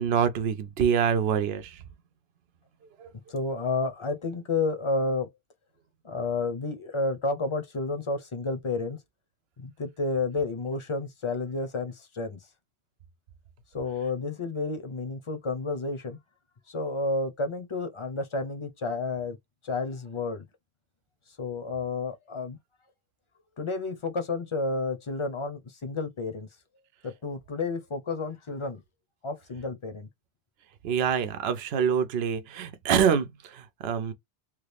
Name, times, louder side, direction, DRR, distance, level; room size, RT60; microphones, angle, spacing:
voice 1, 0.0-1.8 3.0-3.1 30.8-34.1, right 7 dB, 70° right, 0.9 m, -26 dB
voice 2, 3.3-5.3 6.0-9.0 9.6-12.4 13.7-16.2 16.7-19.4 19.6-20.4 21.4-22.6 23.6-26.5 27.0-28.8 29.2-30.1, left 3 dB, 35° left, 0.7 m, -31 dB
3.1 x 2.4 x 3.3 m
omnidirectional pair, 1.1 m